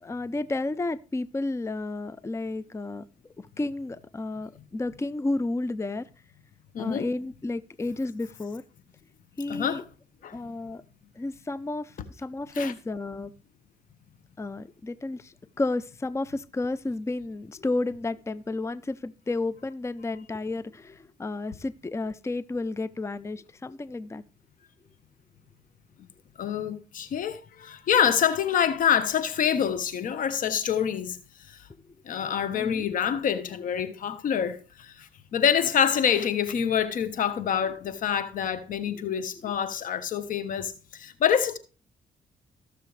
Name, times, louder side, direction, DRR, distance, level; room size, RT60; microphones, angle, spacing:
voice 1, 0.0-3.0 3.4-6.1 6.8-8.6 9.4-9.8 10.3-10.8 11.2-13.3 14.4-24.2 32.1-32.3 32.5-33.0, left 2 dB, 20° left, 0.6 m, -32 dB
voice 2, 6.7-7.1 9.5-9.8 10.2-10.5 12.5-12.7 26.4-31.2 31.5-31.6 32.0-41.6, left 8 dB, 70° left, 1.3 m, -26 dB
17.0 x 6.7 x 3.3 m
cardioid pair, 70°, 14 cm